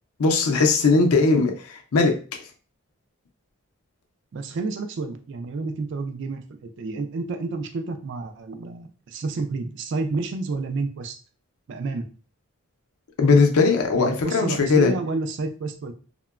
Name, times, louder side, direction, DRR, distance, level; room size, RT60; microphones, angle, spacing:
voice 1, 0.2-2.1 13.2-14.9, left 4 dB, 80° left, 3 dB, 0.5 m, -19 dB
voice 2, 4.3-11.2 11.7-12.1 13.9-15.9, right 3 dB, 55° right, 7 dB, 0.3 m, -30 dB
2.9 x 2.1 x 2.3 m, 0.38 s
head